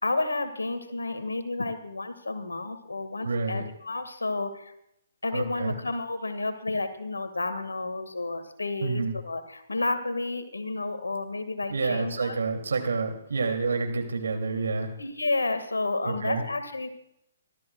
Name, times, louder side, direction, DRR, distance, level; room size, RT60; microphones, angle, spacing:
voice 1, 0.0-4.7 5.2-12.4 15.0-16.9, left 2 dB, 80° left, 9 dB, 1.8 m, -31 dB
voice 2, 3.2-3.6 5.3-5.8 8.8-9.1 11.7-14.9 16.0-16.4, right 4 dB, 70° right, 5 dB, 2.8 m, -28 dB
26.0 x 13.5 x 2.4 m, 0.77 s
figure-of-eight pair, 130°, 0 cm